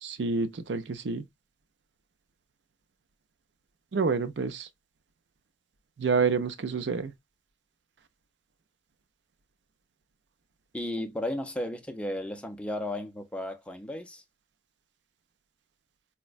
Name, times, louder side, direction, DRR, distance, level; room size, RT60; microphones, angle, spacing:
voice 1, 0.0-1.2 3.9-4.7 6.0-7.1, right 4 dB, 75° right, 0.5 m, -28 dB
voice 2, 10.7-14.2, left 1 dB, 5° left, 0.5 m, -34 dB
4.4 x 2.1 x 2.3 m
head